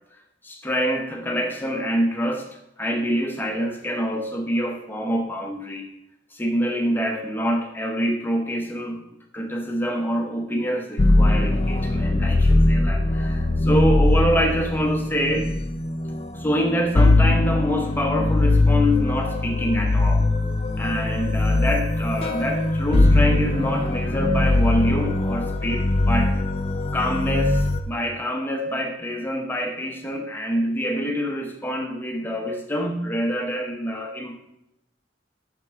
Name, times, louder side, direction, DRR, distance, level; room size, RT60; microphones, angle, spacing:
voice 1, 0.4-2.5 2.8-5.9 6.3-9.0 9.3-15.5 16.3-20.3 20.8-26.3 26.9-34.4, equal, 10° left, 2 dB, 0.8 m, -26 dB
sound 1, 11.0-27.8, left 2 dB, 30° left, 0.4 m, -21 dB
7.4 x 6.0 x 3.6 m, 0.86 s
head